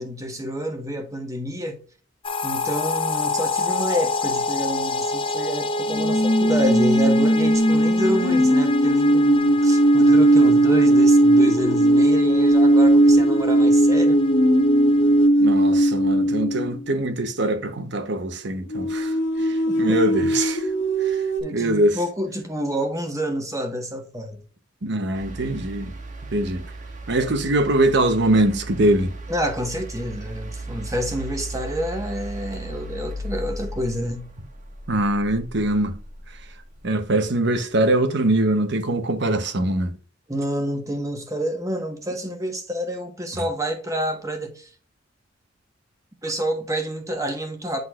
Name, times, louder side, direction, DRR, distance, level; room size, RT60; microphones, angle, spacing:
voice 1, 0.0-1.8 2.4-14.2 19.9-20.0 21.4-24.4 29.3-34.3 40.3-44.7 46.2-47.8, equal, 15° right, 1.3 m, -28 dB
sound 1, 2.2-15.3, left 1 dB, 30° left, 0.6 m, -28 dB
sound 2, 5.9-16.9 18.7-21.4, right 1 dB, 70° left, 1.5 m, -18 dB
voice 2, 15.4-19.1 19.4-20.6 21.0-21.2 21.5-22.0 24.8-25.9 26.3-26.6 27.1-29.1 34.9-35.9 36.8-39.9 43.3-43.4, right 1 dB, 65° right, 0.9 m, -22 dB
sound 3, 25.1-37.4 38.7-38.8, right 1 dB, 40° right, 1.6 m, -36 dB
9.7 x 4.0 x 2.4 m
head